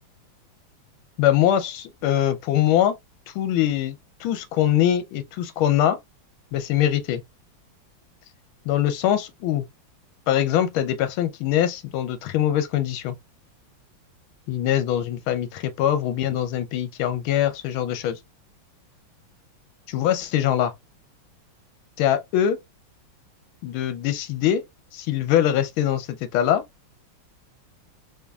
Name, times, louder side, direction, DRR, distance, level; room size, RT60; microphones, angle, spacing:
voice 1, 1.2-2.9 3.3-6.0 6.5-7.2 8.6-9.7 10.3-13.2 14.5-18.2 19.9-20.7 22.0-22.6 23.6-24.6 24.9-26.6, left 11 dB, 85° left, 1.5 m, -23 dB
5.0 x 2.5 x 2.3 m
omnidirectional pair, 2.2 m